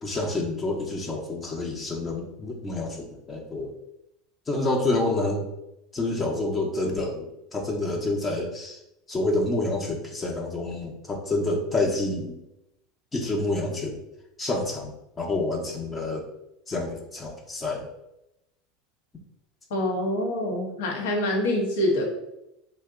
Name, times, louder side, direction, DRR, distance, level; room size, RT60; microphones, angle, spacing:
voice 1, 0.0-3.7 4.5-5.5 5.9-8.8 9.1-12.4 13.1-14.0 14.4-14.9 15.2-16.3 16.7-17.9, left 2 dB, 20° left, 1 dB, 0.6 m, -28 dB
voice 2, 19.7-22.0, left 1 dB, 75° left, 0 dB, 0.8 m, -25 dB
2.8 x 2.1 x 3.5 m, 0.87 s
hypercardioid pair, 90°, 0 cm